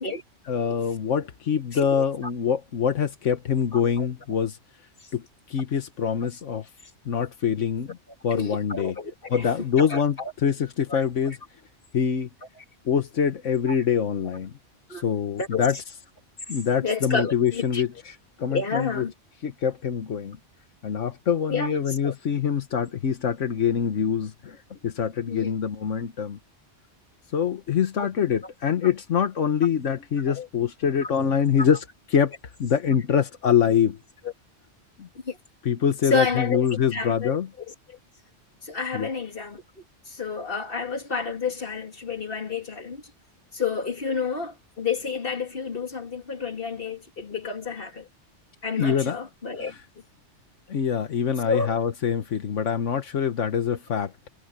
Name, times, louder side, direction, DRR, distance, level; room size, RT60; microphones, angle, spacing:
voice 1, 0.5-4.6 5.1-6.7 7.0-8.0 8.2-9.0 9.3-11.4 11.9-12.3 12.8-14.5 14.9-15.8 16.5-19.0 19.4-20.4 20.8-26.4 27.3-31.8 32.1-34.0 35.0-35.1 35.6-37.5 38.9-39.1 48.8-49.2 49.6-49.8 50.7-54.3, left 7 dB, 85° left, 1.5 m, -25 dB
voice 2, 1.7-2.0 4.0-4.1 8.3-9.5 9.8-10.3 10.9-11.0 12.6-12.7 14.9-15.0 15.4-15.6 16.8-17.8 18.5-19.1 21.5-22.1 25.3-25.5 28.0-28.1 30.3-30.5 31.6-31.7 35.2-35.4 36.1-36.6 36.9-37.4 37.9-38.0 38.6-39.6 40.1-43.0 43.5-48.1 48.6-49.7 51.5-51.8, left 5 dB, 50° left, 2.7 m, -30 dB
omnidirectional pair, 1.2 m